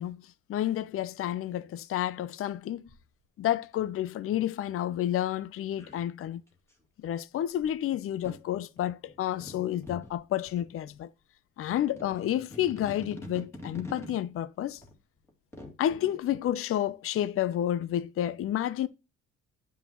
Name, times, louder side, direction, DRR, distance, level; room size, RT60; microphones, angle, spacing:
voice 1, 0.0-2.8 3.4-6.4 7.0-11.1 11.6-14.8 15.8-18.9, left 12 dB, 45° left, 0.5 m, -30 dB
sound 1, 2.9-3.0 5.0-5.1 5.8-6.7 7.6-7.7 8.2-10.2 10.5-10.9 11.7-14.2 14.7-16.2, left 1 dB, 10° left, 2.4 m, -45 dB
9.2 x 5.6 x 3.0 m
cardioid pair, 105°, 31 cm